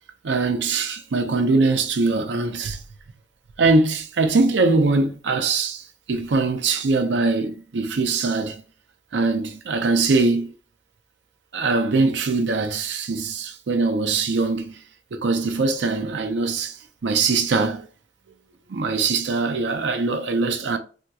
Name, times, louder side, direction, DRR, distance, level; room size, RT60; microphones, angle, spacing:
voice 1, 0.2-2.8 3.6-8.6 9.1-10.5 11.5-14.8 15.1-16.8 17.0-17.9 18.7-20.8, right 3 dB, 80° right, 0.5 m, -22 dB
3.4 x 2.3 x 2.8 m
head